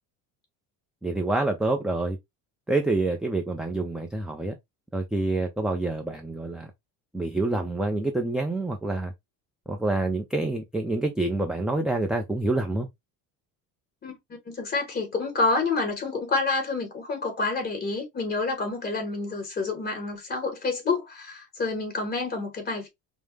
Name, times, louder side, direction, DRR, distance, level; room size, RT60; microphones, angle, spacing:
voice 1, 1.0-2.2 2.7-4.6 4.9-6.7 7.1-9.1 9.7-12.9, right 2 dB, ahead, 0.4 m, -27 dB
voice 2, 14.5-22.9, left 3 dB, 30° left, 2.2 m, -28 dB
5.2 x 2.1 x 3.4 m
cardioid pair, 140°, 35 cm